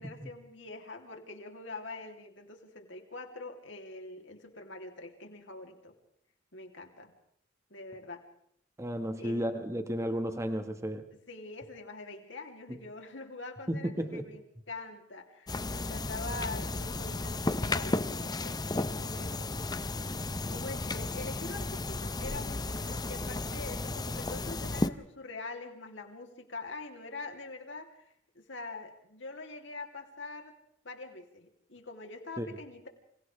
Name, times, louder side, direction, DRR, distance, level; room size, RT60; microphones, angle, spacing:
voice 1, 0.0-5.9 6.5-7.1 7.7-8.2 9.2-9.4 11.3-19.6 20.5-30.6 30.8-32.9, left 3 dB, 65° left, 3 dB, 3.1 m, -44 dB
voice 2, 8.8-11.0 12.7-12.8 13.7-14.3 32.4-32.5, equal, 15° right, 7 dB, 1.6 m, -33 dB
sound 1, 15.5-24.9, left 2 dB, 20° left, 0.7 m, -34 dB
29.0 x 26.5 x 3.4 m, 0.70 s
head